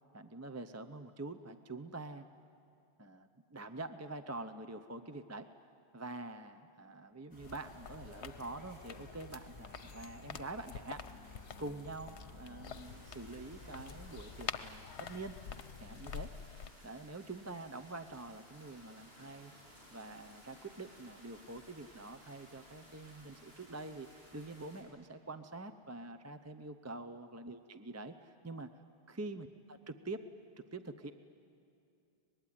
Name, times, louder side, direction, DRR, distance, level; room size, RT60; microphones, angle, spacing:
voice 1, 0.1-2.3 3.0-5.5 5.9-11.0 11.6-15.4 15.8-16.3 16.8-19.5 19.9-28.7 29.1-30.2 30.6-31.1, right 2 dB, 20° right, 9 dB, 0.5 m, -46 dB
sound 1, 7.3-14.5, left 1 dB, 30° left, 5.5 m, -56 dB
sound 2, 7.4-16.7, left 7 dB, 80° left, 1.1 m, -48 dB
sound 3, 12.7-24.8, equal, 65° right, 6.9 m, -59 dB
24.5 x 20.5 x 10.0 m, 2.6 s
omnidirectional pair, 1.1 m